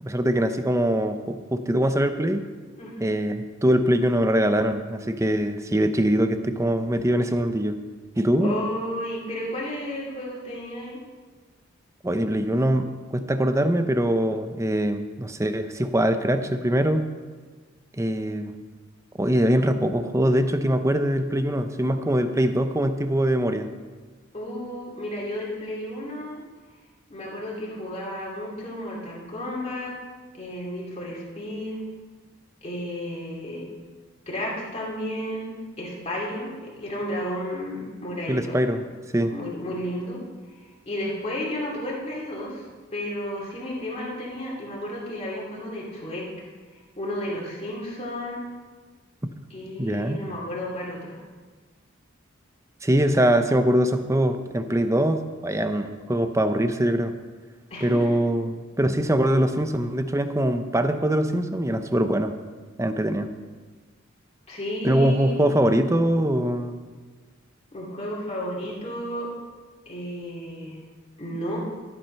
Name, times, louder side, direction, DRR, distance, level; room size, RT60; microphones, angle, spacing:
voice 1, 0.0-2.4 3.0-7.8 8.2-8.5 12.0-17.1 18.0-18.6 19.2-23.7 38.3-38.8 39.1-39.3 49.8-50.2 52.8-57.1 57.8-62.3 62.8-63.3 64.8-66.9, right 1 dB, 15° right, 8 dB, 0.6 m, -23 dB
voice 2, 2.7-3.1 8.4-11.0 24.3-26.4 27.1-30.0 30.3-31.8 32.6-33.7 34.3-38.6 39.3-40.2 40.5-42.6 42.9-46.3 46.7-48.4 49.5-51.2 57.7-58.2 64.5-65.4 67.7-69.3 69.9-70.8 71.2-71.6, left 1 dB, 30° left, -4 dB, 2.6 m, -32 dB
13.5 x 8.8 x 5.5 m, 1.4 s
head